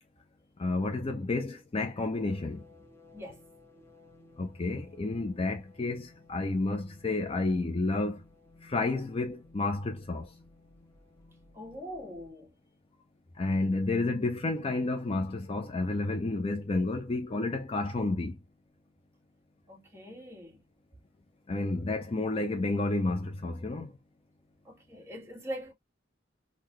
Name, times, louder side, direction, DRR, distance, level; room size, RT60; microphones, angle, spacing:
voice 1, 0.6-2.6 4.4-8.2 8.7-10.3 13.4-18.4 21.5-23.9, left 2 dB, 30° left, 0.5 m, -30 dB
sound 1, 2.1-12.3, left 2 dB, 15° left, 0.8 m, -58 dB
voice 2, 11.5-12.5 19.7-20.6 24.6-25.7, equal, 15° right, 1.5 m, -42 dB
3.8 x 2.2 x 3.0 m
head